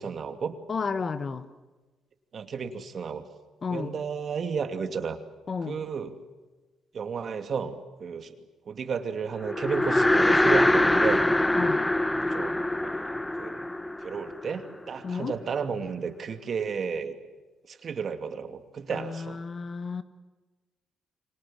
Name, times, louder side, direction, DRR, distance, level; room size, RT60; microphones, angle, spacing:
voice 1, 0.0-0.6 2.3-3.3 3.7-5.2 5.7-6.2 6.9-8.3 8.7-11.2 12.2-13.6 14.0-17.1 17.7-19.4, right 6 dB, 50° right, 8 dB, 2.7 m, -33 dB
voice 2, 0.7-1.5 3.6-3.9 5.5-5.8 11.5-11.8 15.0-15.4 18.9-20.0, left 5 dB, 40° left, 12 dB, 1.6 m, -32 dB
sound 1, 9.4-14.9, left 1 dB, 10° left, 0.9 m, -24 dB
29.0 x 25.0 x 7.7 m, 1.3 s
cardioid pair, 90°, 0 cm